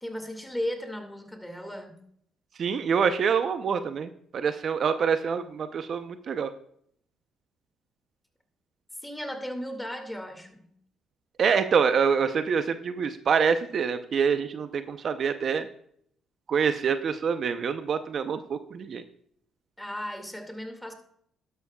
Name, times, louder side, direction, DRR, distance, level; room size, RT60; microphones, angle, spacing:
voice 1, 0.0-2.0 9.0-10.7 19.8-20.9, equal, 5° left, 6 dB, 2.1 m, -35 dB
voice 2, 2.6-6.5 11.4-15.7 16.5-19.0, right 6 dB, 55° right, 10 dB, 0.7 m, -26 dB
12.0 x 11.5 x 2.3 m, 0.66 s
supercardioid pair, 80°, 0 cm